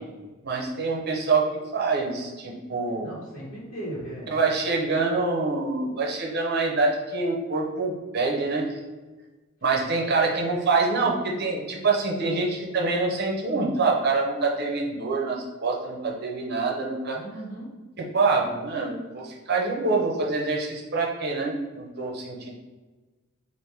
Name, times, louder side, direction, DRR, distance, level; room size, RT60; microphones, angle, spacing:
voice 1, 0.4-1.5 1.7-3.1 4.3-8.7 9.6-17.2 18.1-22.5, right 3 dB, 50° right, -1 dB, 0.7 m, -25 dB
voice 2, 3.0-4.4 9.8-10.5 17.1-17.7, right 1 dB, 60° left, -9 dB, 1.4 m, -38 dB
3.4 x 2.5 x 4.5 m, 1.2 s
head